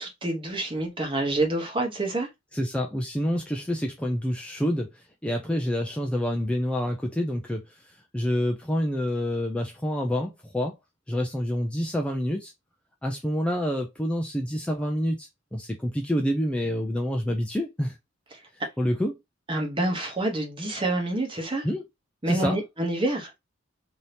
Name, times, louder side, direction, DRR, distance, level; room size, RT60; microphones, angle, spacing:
voice 1, 0.0-2.3 19.5-21.7 22.2-23.3, right 2 dB, 25° right, 0.9 m, -27 dB
voice 2, 2.5-10.8 11.1-12.5 13.0-18.0 18.8-19.2 21.6-21.8 22.3-22.6, equal, 5° left, 0.3 m, -28 dB
2.7 x 2.7 x 3.2 m
head